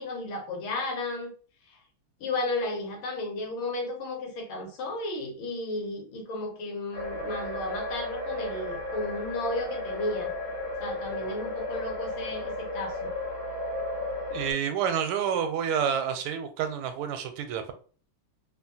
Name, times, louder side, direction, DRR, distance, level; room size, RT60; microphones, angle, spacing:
voice 1, 0.0-1.3 2.2-10.3 10.8-13.1, left 2 dB, 80° left, 1.7 m, -33 dB
sound 1, 6.9-14.5, left 2 dB, 50° left, 1.6 m, -34 dB
voice 2, 14.3-17.7, right 8 dB, 85° right, 1.5 m, -29 dB
3.7 x 2.4 x 2.6 m
omnidirectional pair, 2.4 m